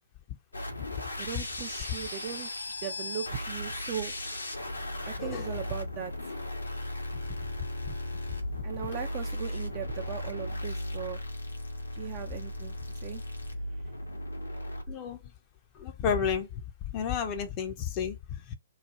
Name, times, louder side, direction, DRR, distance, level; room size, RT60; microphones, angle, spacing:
sound 1, 0.5-14.9, left 1 dB, 85° left, 1.3 m, -36 dB
voice 1, 1.2-2.5 2.8-4.1 5.1-6.1 8.6-11.2 11.9-13.2 13.7-13.8, right 9 dB, 35° right, 0.5 m, -38 dB
voice 2, 8.3-8.6 14.9-15.2 15.7-16.6 16.9-18.5, left 7 dB, 30° left, 0.6 m, -32 dB
3.2 x 2.2 x 4.1 m
figure-of-eight pair, 130°, 0 cm